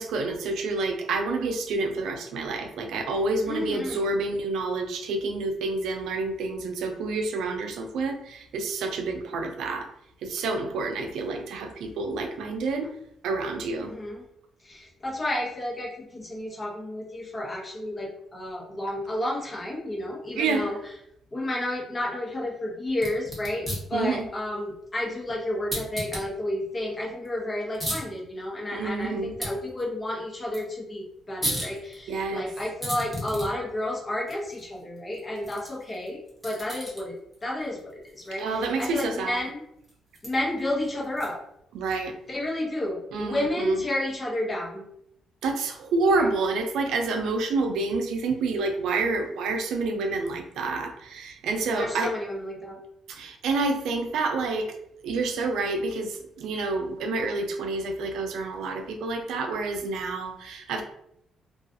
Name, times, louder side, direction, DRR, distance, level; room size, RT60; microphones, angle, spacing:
voice 1, 0.0-9.9 10.2-12.9 13.2-14.0 20.4-20.7 23.9-24.3 28.7-29.3 32.1-32.5 38.4-39.4 41.7-42.2 43.1-43.8 45.4-52.1 53.1-54.7 55.0-60.8, right 3 dB, 80° right, 5 dB, 0.4 m, -28 dB
voice 2, 3.5-4.2 13.8-14.2 14.6-20.8 21.3-39.6 40.2-41.4 42.3-44.8 46.1-46.2 51.7-52.8, left 1 dB, 30° left, -3 dB, 0.8 m, -31 dB
sound 1, 22.9-41.6, equal, ahead, 1.0 m, -39 dB
2.4 x 2.3 x 2.6 m, 0.75 s
cardioid pair, 90°, 0 cm